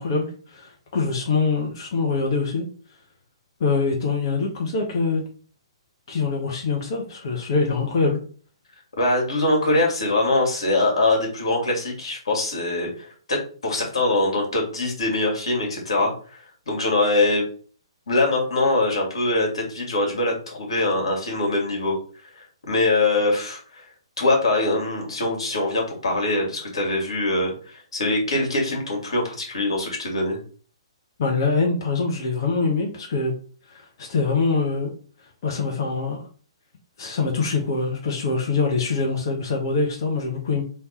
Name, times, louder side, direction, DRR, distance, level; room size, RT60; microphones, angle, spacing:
voice 1, 0.0-2.7 3.6-5.2 6.1-8.2 31.2-33.3 33.7-34.9 35.4-36.3 37.0-40.6, left 4 dB, 50° left, 0 dB, 1.1 m, -24 dB
voice 2, 9.0-17.4 18.1-22.0 22.3-23.8 24.2-30.4, left 2 dB, 70° left, 0 dB, 2.2 m, -23 dB
3.4 x 3.1 x 4.3 m, 0.41 s
figure-of-eight pair, 125°, 3 cm